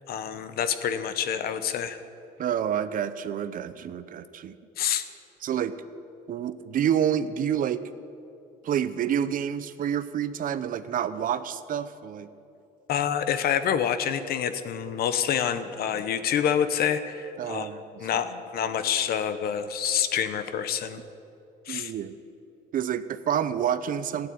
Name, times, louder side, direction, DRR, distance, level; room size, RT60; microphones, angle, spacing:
voice 1, 0.1-2.0 4.8-5.0 12.9-17.7 18.0-21.0 21.7-21.9, left 8 dB, 65° left, 11 dB, 1.0 m, -27 dB
voice 2, 2.4-4.6 5.4-5.7 6.3-7.8 8.6-12.3 17.4-17.8 21.7-22.2 22.7-24.3, right 9 dB, 55° right, 13 dB, 0.7 m, -28 dB
14.0 x 8.9 x 9.0 m, 2.7 s
cardioid pair, 110°, 17 cm